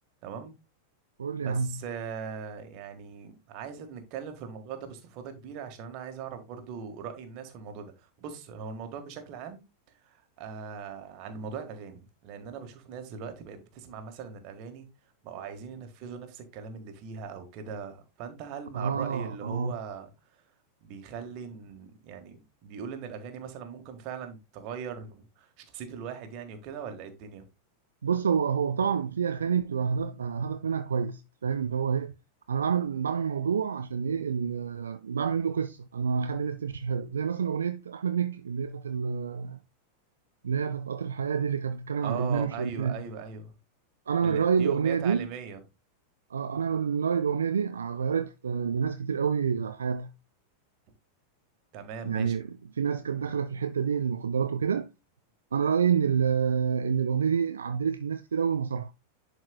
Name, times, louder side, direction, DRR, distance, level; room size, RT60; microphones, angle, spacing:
voice 1, 0.2-0.5 1.4-9.6 10.0-14.8 15.2-20.4 20.8-22.4 22.6-27.5 42.0-43.6 44.2-45.6 51.7-52.4, right 6 dB, 40° right, 1.6 m, -40 dB
voice 2, 1.2-1.8 15.4-15.5 18.7-19.7 28.0-32.1 32.5-39.6 40.4-43.0 44.1-45.3 46.3-50.1 52.0-54.9 55.5-58.9, right 6 dB, 70° right, 0.4 m, -28 dB
11.0 x 4.4 x 2.3 m
figure-of-eight pair, 90°, 0 cm